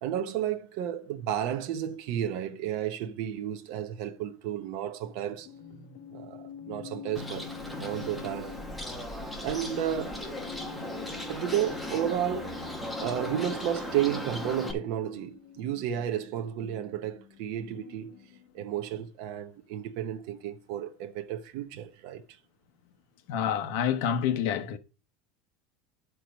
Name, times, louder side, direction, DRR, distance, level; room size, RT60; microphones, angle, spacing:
voice 1, 0.0-5.5 6.1-8.6 9.4-10.2 11.3-12.6 13.0-18.2 18.5-22.2, right 10 dB, 55° right, 0.7 m, -32 dB
sound 1, 5.2-18.6, left 8 dB, 80° left, 1.3 m, -46 dB
Bird, 7.1-14.7, left 1 dB, ahead, 1.0 m, -37 dB
voice 2, 23.3-24.8, left 8 dB, 60° left, 0.9 m, -28 dB
10.5 x 4.7 x 5.1 m
cardioid pair, 175°, 0 cm